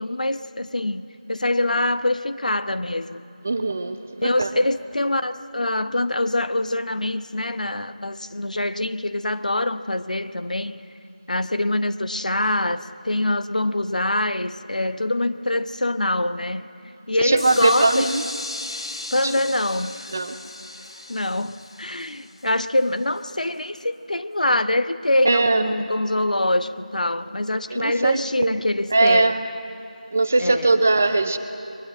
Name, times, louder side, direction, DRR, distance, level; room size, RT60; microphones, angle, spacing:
voice 1, 0.0-3.2 4.2-10.8 11.3-16.7 17.1-18.1 19.1-20.1 21.1-29.3 30.4-30.7, left 1 dB, 65° left, 11 dB, 0.9 m, -24 dB
voice 2, 3.4-4.5 17.2-18.2 19.2-19.3 20.1-20.4 25.2-25.8 27.7-28.6 28.9-29.5 30.1-31.4, right 3 dB, 15° right, 9 dB, 0.4 m, -20 dB
sound 1, 17.4-23.2, left 2 dB, 40° left, 1.3 m, -36 dB
23.0 x 22.0 x 7.7 m, 2.9 s
figure-of-eight pair, 175°, 4 cm